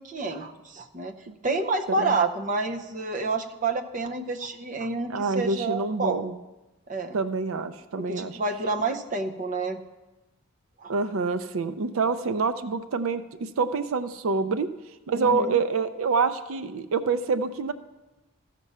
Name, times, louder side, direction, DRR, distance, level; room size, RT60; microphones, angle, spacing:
voice 1, 0.0-1.1 1.4-6.2 6.9-7.2 8.0-9.8 10.8-10.9 15.1-15.6, right 3 dB, 40° right, 5 dB, 0.7 m, -29 dB
voice 2, 5.1-6.3 7.1-8.4 10.9-14.7 15.1-17.7, right 4 dB, 85° right, 12 dB, 0.5 m, -26 dB
14.5 x 6.0 x 5.5 m, 1.1 s
head